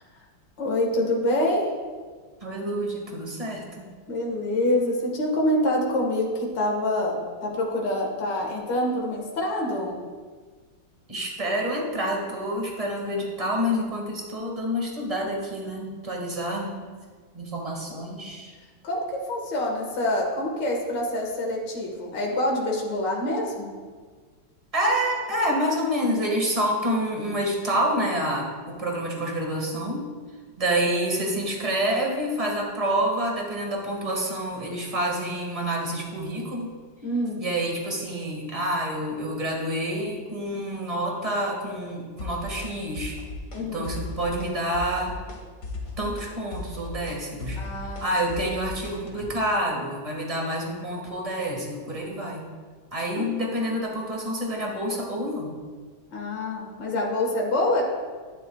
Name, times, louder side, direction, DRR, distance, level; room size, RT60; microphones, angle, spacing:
voice 1, 0.6-1.7 4.1-7.2 7.4-9.9 18.8-23.7 37.0-37.4 43.5-43.9 47.6-48.4 53.2-53.3 56.1-57.8, left 1 dB, 60° left, -1 dB, 2.3 m, -26 dB
voice 2, 2.4-3.9 11.1-16.8 17.3-18.5 24.7-30.1 30.6-36.7 37.4-43.2 43.7-45.2 46.0-52.5 52.9-55.6, equal, 20° right, -1 dB, 1.8 m, -28 dB
sound 1, 42.2-42.7 43.0-43.6 43.8-44.5 44.7-45.4 45.6-49.3, left 3 dB, 45° left, 2.0 m, -36 dB
11.5 x 11.5 x 2.4 m, 1.5 s
omnidirectional pair, 2.2 m